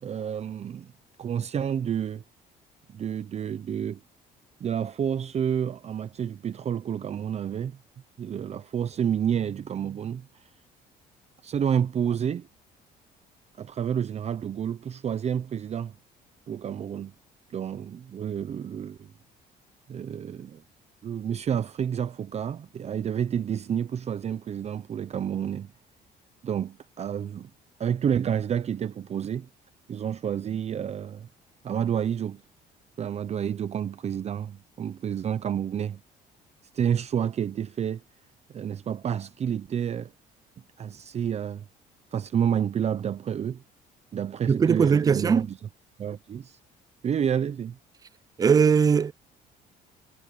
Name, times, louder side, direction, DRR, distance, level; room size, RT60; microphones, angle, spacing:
voice 1, 0.0-0.9 1.2-2.2 2.9-4.0 4.6-7.8 8.2-10.5 11.4-12.5 13.6-15.9 16.5-17.1 17.5-19.1 19.9-20.6 21.0-25.7 26.4-27.5 27.8-29.5 29.9-31.3 31.6-32.4 33.0-36.0 36.7-38.0 38.5-40.1 40.8-41.6 42.1-43.6 44.1-45.6 46.0-46.6 47.0-47.8, right 8 dB, 40° right, 0.8 m, -29 dB
voice 2, 44.5-45.5 48.4-49.1, right 6 dB, 20° right, 0.4 m, -20 dB
cardioid pair, 110°, 17 cm